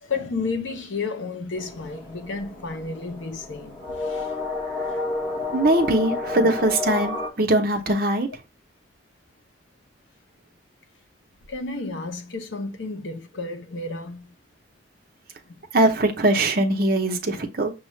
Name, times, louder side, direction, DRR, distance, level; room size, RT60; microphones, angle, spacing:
voice 1, 0.0-4.3 11.5-14.3 15.4-15.5, left 3 dB, 85° left, 0.7 m, -32 dB
sound 1, 1.6-7.3, left 3 dB, 25° left, 1.4 m, -31 dB
voice 2, 5.5-8.3 15.7-17.7, right 1 dB, 50° right, 0.7 m, -21 dB
6.3 x 2.4 x 3.0 m
head